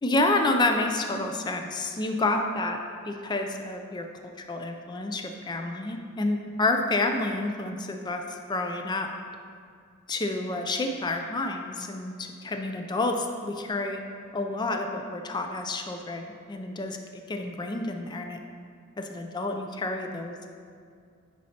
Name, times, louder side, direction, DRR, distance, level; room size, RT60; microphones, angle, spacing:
voice 1, 0.0-4.1 4.4-9.1 10.1-14.0 14.3-18.4 19.0-20.5, left 2 dB, 20° left, 4 dB, 0.3 m, -29 dB
9.2 x 5.4 x 2.8 m, 2.2 s
head